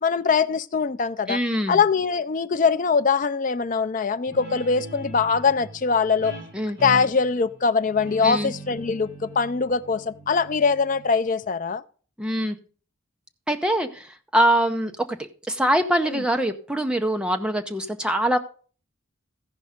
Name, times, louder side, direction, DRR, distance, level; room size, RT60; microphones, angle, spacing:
voice 1, 0.0-1.4 1.7-6.3 6.8-11.8 16.1-16.2, left 5 dB, 40° left, 0.4 m, -22 dB
voice 2, 1.3-1.8 6.5-6.8 8.2-8.5 12.2-12.6 13.5-15.2 15.5-18.4, right 1 dB, 5° right, 0.6 m, -23 dB
Guitar, 4.3-11.4, right 2 dB, 55° right, 6.1 m, -41 dB
15.0 x 5.3 x 5.0 m
head